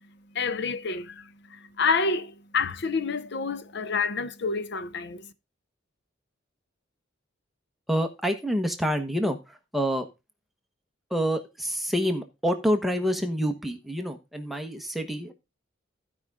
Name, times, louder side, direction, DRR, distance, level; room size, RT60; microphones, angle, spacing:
voice 1, 0.3-5.3, left 4 dB, 60° left, 0.8 m, -28 dB
voice 2, 7.9-10.1 11.1-15.3, equal, ahead, 1.1 m, -27 dB
15.0 x 5.2 x 3.6 m
head